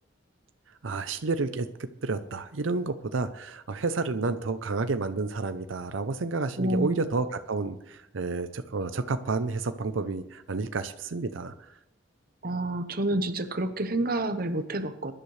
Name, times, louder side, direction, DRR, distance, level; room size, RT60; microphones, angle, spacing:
voice 1, 0.8-1.7 2.0-11.5, right 3 dB, 90° right, 10 dB, 0.7 m, -30 dB
voice 2, 6.6-7.0 12.4-15.1, right 1 dB, 50° right, 9 dB, 1.0 m, -29 dB
22.5 x 11.0 x 3.3 m, 0.84 s
head